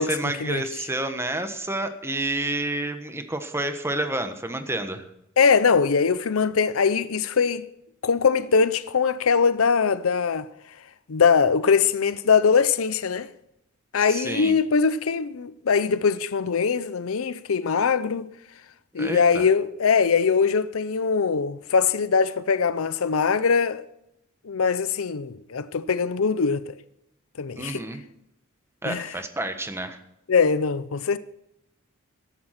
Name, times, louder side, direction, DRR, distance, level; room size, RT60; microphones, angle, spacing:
voice 1, 0.0-5.1 14.1-14.5 19.0-19.5 27.5-28.0 28.8-30.0, right 2 dB, 10° right, 1.3 m, -29 dB
voice 2, 5.4-7.7 8.0-10.5 11.1-13.3 13.9-18.3 18.9-23.8 24.4-26.7 27.4-27.8 28.8-29.1 30.3-31.2, left 5 dB, 70° left, 0.6 m, -22 dB
14.5 x 11.5 x 5.8 m
head